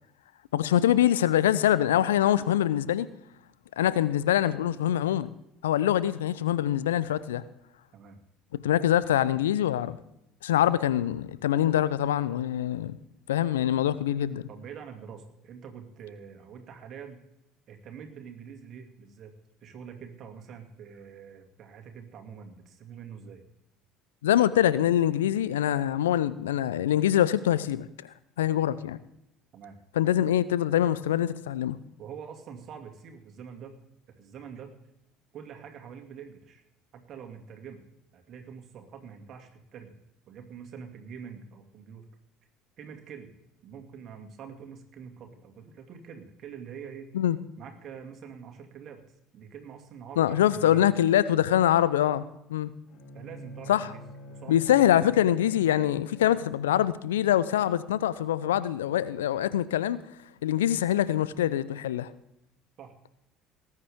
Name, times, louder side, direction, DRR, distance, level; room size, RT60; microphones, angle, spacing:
voice 1, 0.5-3.1 3.8-5.3 5.6-7.4 8.6-10.0 10.4-12.9 13.3-14.4 24.2-27.9 28.4-29.0 30.0-31.8 47.1-47.4 50.2-52.2 52.5-52.7 53.7-53.8 54.5-60.0 60.4-62.1, left 11 dB, 80° left, 0.5 m, -24 dB
voice 2, 14.5-17.2 17.7-19.3 19.6-23.4 29.5-29.8 32.0-33.8 34.1-34.7 35.3-36.6 36.9-37.8 38.1-39.9 40.3-42.1 42.8-43.3 43.6-47.1 47.6-49.0 49.3-50.8 53.1-54.6 62.8-63.0, right 7 dB, 50° right, 2.5 m, -45 dB
Bowed string instrument, 52.9-57.0, left 1 dB, 50° left, 2.7 m, -47 dB
19.0 x 9.5 x 3.7 m
hypercardioid pair, 60°, 0 cm